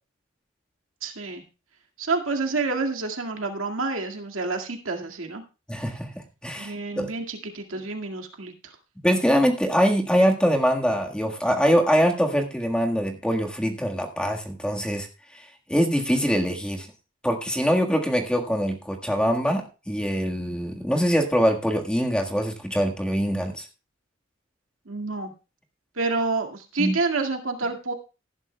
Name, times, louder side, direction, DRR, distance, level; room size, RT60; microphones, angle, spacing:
voice 1, 1.0-1.4 2.0-5.4 6.6-8.5 24.9-25.3 26.0-27.9, right 3 dB, 85° right, 3 dB, 2.1 m, -28 dB
voice 2, 5.7-6.1 6.4-7.1 9.0-15.1 15.7-16.9 17.2-23.6 26.8-27.0, equal, 5° left, 2 dB, 1.5 m, -23 dB
18.0 x 11.0 x 2.3 m, 0.31 s
head